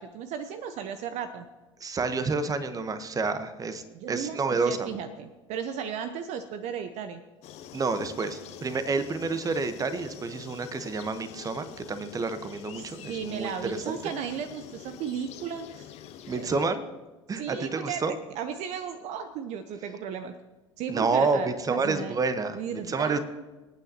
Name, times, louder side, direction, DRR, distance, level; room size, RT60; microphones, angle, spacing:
voice 1, 0.0-1.5 3.9-7.2 12.7-15.9 16.3-16.5 17.4-20.3 20.8-22.2 22.5-23.2, right 7 dB, 50° right, 10 dB, 0.7 m, -35 dB
voice 2, 1.8-4.9 7.7-14.0 16.3-16.8 17.3-18.1 20.9-23.2, right 4 dB, 20° right, 11 dB, 1.1 m, -29 dB
sound 1, 7.4-16.6, left 10 dB, 45° left, 1.1 m, -46 dB
26.0 x 9.0 x 2.9 m, 1.2 s
figure-of-eight pair, 75°, 16 cm